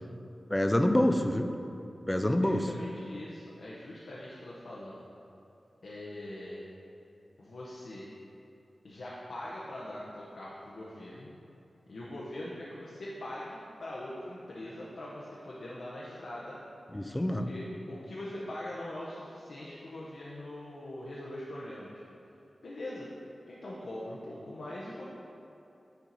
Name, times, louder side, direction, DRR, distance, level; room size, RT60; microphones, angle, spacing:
voice 1, 0.5-1.5 2.1-2.7 16.9-17.5, left 1 dB, 15° left, 6 dB, 0.4 m, -26 dB
voice 2, 2.4-5.1 5.8-6.6 7.4-8.1 8.8-11.3 11.9-16.6 17.3-22.0 22.6-23.1 23.5-25.0, left 1 dB, 75° left, -6 dB, 0.8 m, -42 dB
6.7 x 4.5 x 4.0 m, 2.7 s
wide cardioid pair, 100°, 0 cm